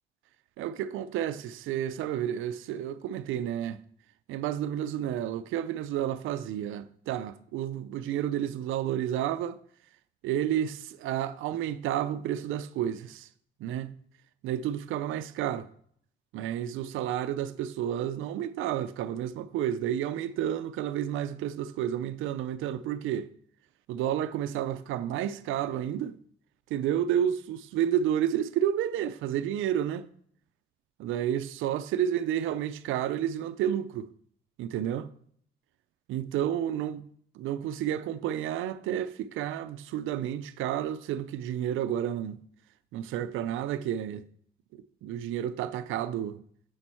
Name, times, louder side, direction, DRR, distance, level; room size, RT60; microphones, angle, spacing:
voice 1, 0.6-3.8 4.3-9.6 10.2-13.3 13.6-14.0 14.4-15.7 16.3-23.3 23.9-26.1 26.7-30.0 31.0-34.1 34.6-35.1 36.1-37.1 37.4-42.4 42.9-44.2 44.7-46.4, right 10 dB, 85° right, 0.5 m, -31 dB
7.6 x 6.2 x 4.3 m
cardioid pair, 90°, 20 cm